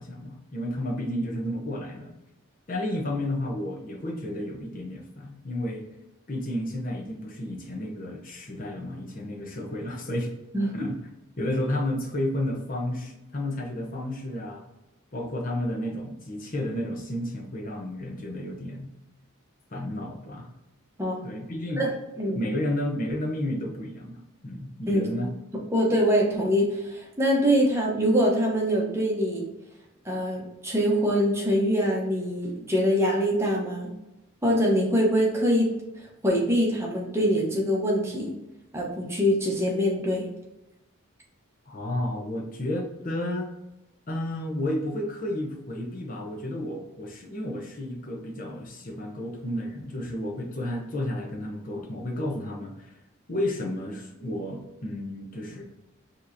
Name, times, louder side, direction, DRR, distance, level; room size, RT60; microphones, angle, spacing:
voice 1, 0.0-2.1 2.7-5.9 6.3-10.3 10.7-11.0 11.4-14.6 15.1-18.9 19.7-20.5 21.2-21.8 22.3-25.3 41.7-43.5 44.1-52.9 53.3-55.6, left 1 dB, 40° left, 0 dB, 0.8 m, -32 dB
voice 2, 25.7-29.5 30.0-33.9 34.4-35.7 36.2-38.3 38.7-40.3, equal, 10° right, -3 dB, 0.9 m, -24 dB
5.3 x 3.0 x 2.7 m, 0.96 s
head